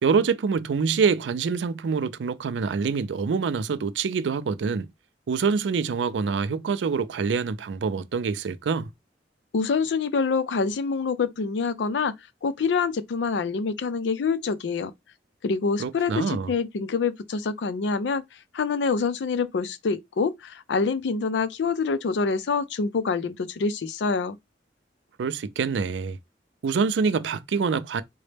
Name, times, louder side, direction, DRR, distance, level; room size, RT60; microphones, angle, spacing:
voice 1, 0.0-4.9 5.3-8.9 15.8-16.5 25.2-26.2 26.6-28.0, right 5 dB, 85° right, 0.4 m, -25 dB
voice 2, 9.5-12.2 12.4-14.9 15.4-18.2 18.5-24.4, left 4 dB, 80° left, 0.4 m, -26 dB
4.0 x 2.1 x 3.2 m
head